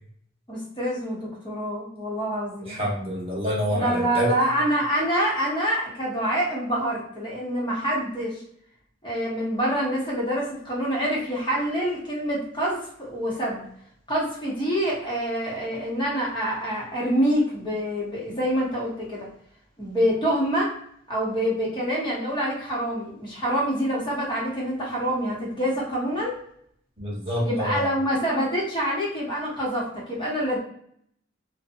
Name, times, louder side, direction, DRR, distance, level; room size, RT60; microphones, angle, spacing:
voice 1, 0.5-2.8 3.7-8.4 9.0-13.6 14.1-19.3 19.8-20.7 21.1-26.4 27.4-30.6, equal, 25° left, -5 dB, 1.0 m, -26 dB
voice 2, 2.7-4.4 27.0-27.8, equal, 30° right, -5 dB, 1.0 m, -27 dB
2.6 x 2.2 x 2.6 m, 0.66 s
head